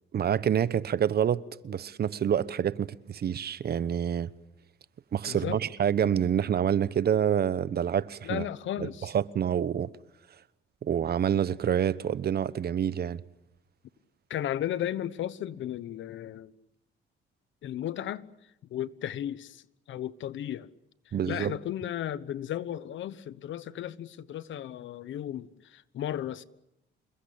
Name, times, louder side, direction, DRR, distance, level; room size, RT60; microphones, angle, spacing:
voice 1, 0.1-4.3 5.1-8.4 8.8-9.9 10.8-13.2 21.1-21.6, right 9 dB, 55° right, 1.0 m, -27 dB
voice 2, 5.3-5.6 8.2-9.1 14.3-16.5 17.6-18.3 18.7-20.7 21.3-26.4, left 11 dB, 75° left, 1.1 m, -35 dB
28.0 x 21.0 x 8.6 m
cardioid pair, 90°, 20 cm